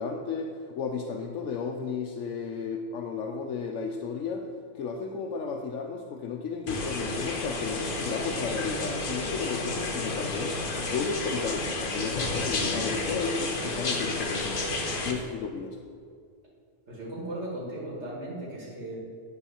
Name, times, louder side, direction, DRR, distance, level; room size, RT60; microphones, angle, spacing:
voice 1, 0.0-4.5 4.7-10.6 10.9-14.6 15.0-15.8, left 5 dB, 90° left, 2 dB, 1.0 m, -33 dB
sound 1, 6.7-15.1, left 2 dB, 45° left, 1.1 m, -31 dB
voice 2, 16.9-19.0, right 1 dB, 65° right, -5 dB, 2.5 m, -37 dB
9.8 x 4.4 x 7.0 m, 2.1 s
omnidirectional pair, 1.3 m